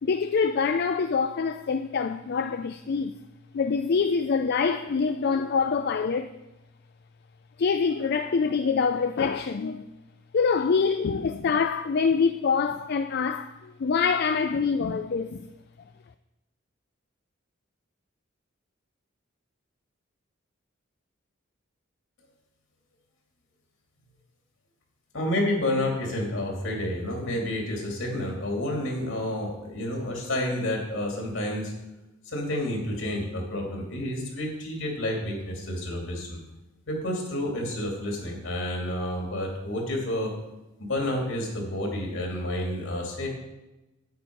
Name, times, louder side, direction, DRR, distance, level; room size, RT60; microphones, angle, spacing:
voice 1, 0.0-3.2 3.5-6.3 7.6-9.9 10.3-15.4, left 5 dB, 55° left, 0.4 m, -25 dB
voice 2, 25.1-31.7 32.3-36.4 36.9-40.3 40.8-43.3, left 1 dB, 75° left, 2.8 m, -30 dB
9.3 x 9.1 x 4.7 m
head